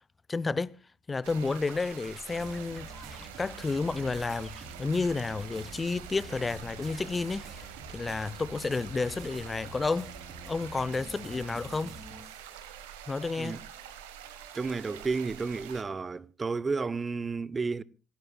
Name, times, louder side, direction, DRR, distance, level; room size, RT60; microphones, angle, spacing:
voice 1, 0.3-0.7 1.1-2.9 3.4-10.1 10.5-12.0 13.1-13.6, left 3 dB, 30° left, 0.6 m, -31 dB
sound 1, 1.2-15.8, right 10 dB, 80° right, 1.3 m, -47 dB
sound 2, 1.5-4.7 5.1-5.8 6.1-7.7, left 2 dB, 10° left, 2.5 m, -54 dB
sound 3, 2.3-16.2, right 2 dB, 60° right, 2.9 m, -48 dB
voice 2, 14.5-17.8, right 4 dB, 30° right, 0.7 m, -32 dB
26.5 x 13.0 x 2.3 m
hypercardioid pair, 50°, 0 cm